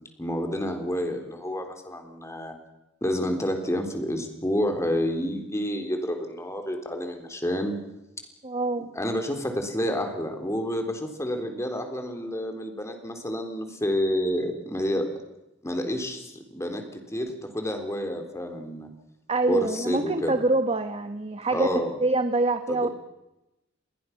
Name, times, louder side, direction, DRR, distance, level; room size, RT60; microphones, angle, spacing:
voice 1, 0.2-2.5 3.0-7.7 8.9-15.1 15.6-18.9 19.4-20.4 21.5-21.9 22.7-22.9, equal, 15° left, 5 dB, 3.8 m, -29 dB
voice 2, 8.4-8.9 19.3-21.7 22.0-22.9, right 2 dB, 30° right, 8 dB, 1.2 m, -25 dB
29.0 x 21.5 x 6.0 m, 0.94 s
head